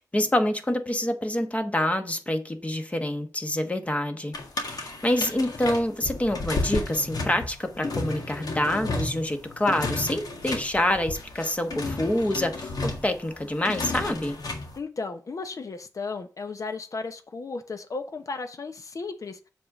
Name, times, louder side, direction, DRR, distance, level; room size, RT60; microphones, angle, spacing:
voice 1, 0.1-14.4, left 1 dB, 20° left, 1.2 m, -27 dB
sound 1, 4.3-14.8, left 2 dB, 80° left, 1.7 m, -32 dB
voice 2, 14.8-19.4, left 4 dB, 55° left, 1.0 m, -35 dB
7.6 x 3.7 x 6.6 m
wide cardioid pair, 105°, 6 cm